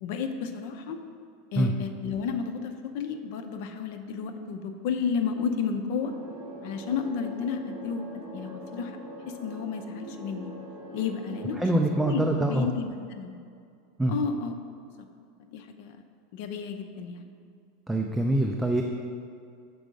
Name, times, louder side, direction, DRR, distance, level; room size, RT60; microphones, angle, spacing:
voice 1, 0.0-1.0 1.5-6.1 6.6-9.0 9.3-10.5 10.9-11.7 12.0-13.3 14.1-14.5 15.0-15.1 15.4-16.0 16.3-17.3, left 6 dB, 60° left, 7 dB, 0.6 m, -32 dB
sound 1, 6.0-12.2, right 1 dB, 30° right, 0.9 m, -43 dB
voice 2, 11.6-12.7 14.0-14.1 17.9-18.8, right 1 dB, 5° right, 2 dB, 0.3 m, -24 dB
6.1 x 4.6 x 5.2 m, 2.3 s
supercardioid pair, 150°, 0 cm